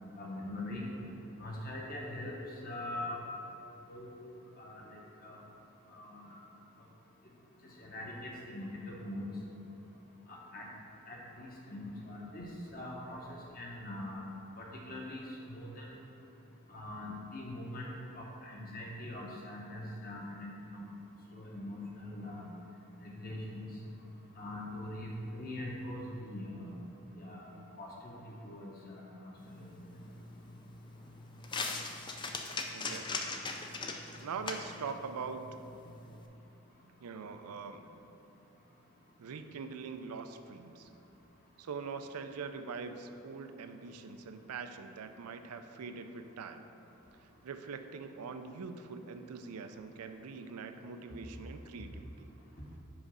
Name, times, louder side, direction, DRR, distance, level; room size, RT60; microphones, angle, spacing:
voice 1, 0.2-0.8 1.4-2.4 2.6-3.2 3.9-4.1 4.6-5.4 5.9-6.4 7.8-9.3 10.3-10.7 11.1-13.2 13.5-14.2 14.6-16.0 16.7-20.9 21.3-22.5 23.0-23.7 24.4-26.7 27.2-27.4 27.8-29.9, left 1 dB, 40° left, -2 dB, 1.1 m, -43 dB
sound 1, 29.4-36.3, left 3 dB, 20° left, 0.3 m, -41 dB
voice 2, 32.7-33.3 34.2-35.5 37.0-37.9 39.2-40.9 41.6-46.7 47.4-52.3, right 5 dB, 90° right, 8 dB, 0.4 m, -43 dB
5.9 x 4.8 x 5.5 m, 2.9 s
head